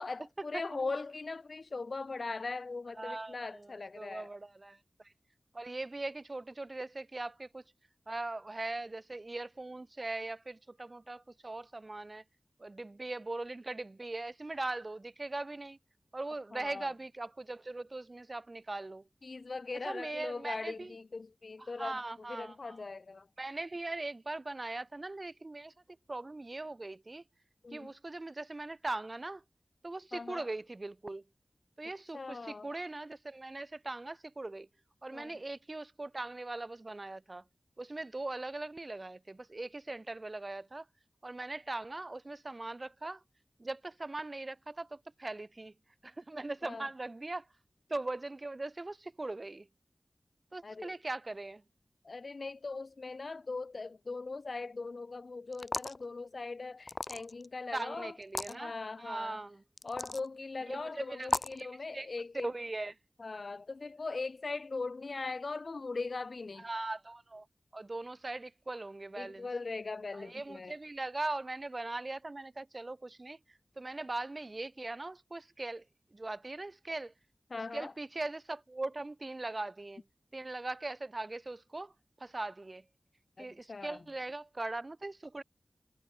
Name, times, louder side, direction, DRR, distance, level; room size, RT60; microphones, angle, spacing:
voice 1, 0.0-4.3 16.5-16.9 19.2-22.0 22.3-23.3 27.6-27.9 30.1-30.5 32.1-32.7 35.1-35.3 46.6-46.9 50.6-51.0 52.0-58.1 58.5-59.4 59.8-62.5 63.2-66.7 69.2-70.7 77.5-77.9 83.4-84.0, left 3 dB, 65° left, 3.4 m, -40 dB
voice 2, 0.5-0.9 3.0-5.1 5.5-7.6 8.1-12.2 12.6-15.8 16.1-19.1 19.8-20.9 21.6-22.8 23.4-25.7 26.1-27.2 27.7-29.4 29.8-31.2 31.8-34.7 35.0-37.4 37.8-40.8 41.2-43.2 43.6-45.7 46.0-47.5 47.9-49.7 50.5-51.6 57.7-58.7 59.0-59.6 60.7-62.1 62.4-62.9 66.6-67.5 67.7-69.5 70.1-75.8 76.1-77.1 77.7-80.0 80.3-81.9 82.2-82.8 83.4-85.4, right 2 dB, 40° right, 1.8 m, -40 dB
sound 1, 55.5-56.0 56.9-57.5 58.2-58.5 59.8-60.2 61.2-61.6, left 2 dB, 50° left, 0.9 m, -35 dB
wide cardioid pair, 85°, 0 cm